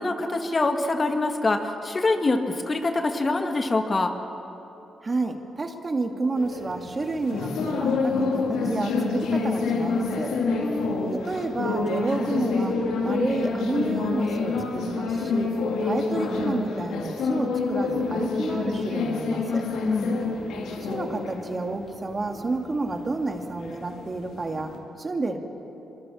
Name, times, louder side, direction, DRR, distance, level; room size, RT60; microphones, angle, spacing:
voice 1, 0.0-4.2 10.6-11.1 19.8-20.2, left 2 dB, 40° left, 6 dB, 2.1 m, -25 dB
voice 2, 5.0-10.3 11.1-12.8 13.0-15.5 15.8-19.6 20.8-24.7 25.0-25.4, right 3 dB, 40° right, 5 dB, 2.5 m, -30 dB
sound 1, 6.4-24.8, left 4 dB, 85° left, 2.3 m, -28 dB
24.0 x 23.5 x 7.2 m, 3.0 s
supercardioid pair, 55°, 0 cm